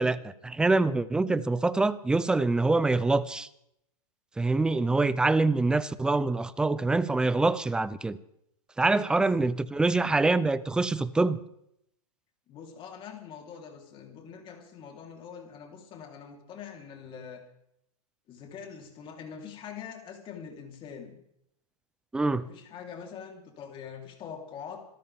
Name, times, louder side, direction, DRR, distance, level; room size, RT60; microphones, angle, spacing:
voice 1, 0.0-3.5 4.4-8.2 8.8-11.4 22.1-22.4, right 3 dB, 5° right, 0.5 m, -25 dB
voice 2, 8.9-9.3 12.5-17.4 18.3-21.2 22.2-24.9, left 7 dB, 25° left, 3.5 m, -44 dB
26.5 x 13.5 x 3.6 m
hypercardioid pair, 140°, 20 cm